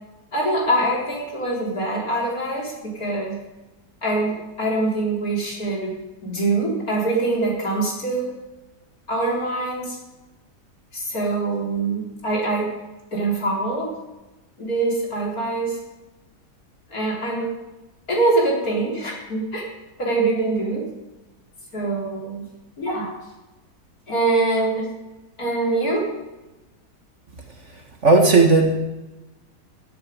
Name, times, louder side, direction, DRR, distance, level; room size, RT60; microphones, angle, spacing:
voice 1, 0.3-3.4 4.0-5.9 6.2-8.3 9.1-10.0 10.9-12.7 13.1-13.9 14.6-15.8 16.9-17.5 18.1-19.6 20.0-20.9 21.7-22.4 22.8-23.1 24.1-24.8 25.4-26.1, right 2 dB, 60° left, -2 dB, 4.5 m, -24 dB
voice 2, 27.7-28.7, right 3 dB, 45° right, 3 dB, 2.2 m, -16 dB
16.0 x 11.5 x 5.3 m, 1.0 s
omnidirectional pair, 1.8 m